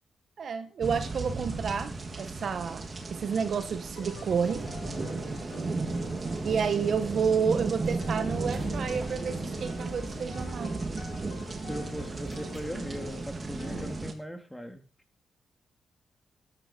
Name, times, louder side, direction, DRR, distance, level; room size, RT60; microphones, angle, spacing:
voice 1, 0.4-2.8 3.1-4.7 6.4-10.8 12.7-12.9, right 6 dB, 65° right, 1.5 m, -30 dB
sound 1, 0.8-14.1, right 3 dB, 40° right, 3.4 m, -35 dB
sound 2, 3.9-7.6 8.0-13.3 13.6-13.9, left 7 dB, 80° left, 3.5 m, -47 dB
sound 3, 4.2-11.3 12.3-12.8, right 1 dB, 25° right, 7.6 m, -46 dB
voice 2, 11.6-14.8, equal, 5° left, 3.7 m, -39 dB
13.5 x 12.0 x 5.2 m
supercardioid pair, 45°, 0 cm